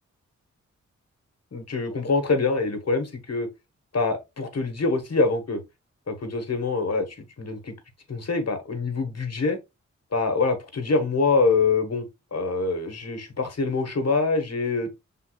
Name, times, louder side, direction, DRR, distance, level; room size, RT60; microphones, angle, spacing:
voice 1, 1.5-3.5 3.9-5.6 6.1-7.0 7.4-7.7 8.1-9.6 10.1-12.0 12.3-14.9, left 3 dB, 55° left, 1.3 m, -25 dB
5.7 x 3.6 x 2.4 m
cardioid pair, 50°, 30 cm